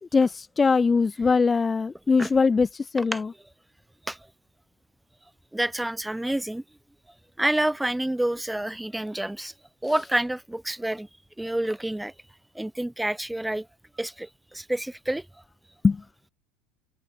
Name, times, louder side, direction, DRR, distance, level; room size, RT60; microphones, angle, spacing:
voice 1, 0.1-3.3 15.8-16.0, left 4 dB, 20° left, 0.4 m, -22 dB
voice 2, 5.5-6.6 7.4-9.5 9.8-11.1 11.4-12.1 12.6-13.7 14.0-15.2, right 1 dB, 5° right, 1.8 m, -28 dB
supercardioid pair, 110°, 0 cm